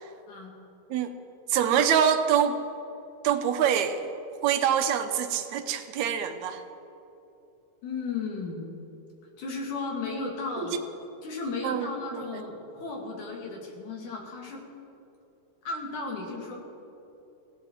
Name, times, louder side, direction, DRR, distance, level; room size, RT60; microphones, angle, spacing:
voice 1, 1.5-2.6 3.2-4.0 4.4-6.6 10.6-10.7 11.6-12.2, right 8 dB, 75° right, 8 dB, 2.1 m, -25 dB
voice 2, 7.8-8.7 9.4-10.8 11.2-14.6 15.7-16.6, left 3 dB, 90° left, 0 dB, 3.7 m, -34 dB
19.0 x 16.0 x 4.5 m, 2.9 s
omnidirectional pair, 3.4 m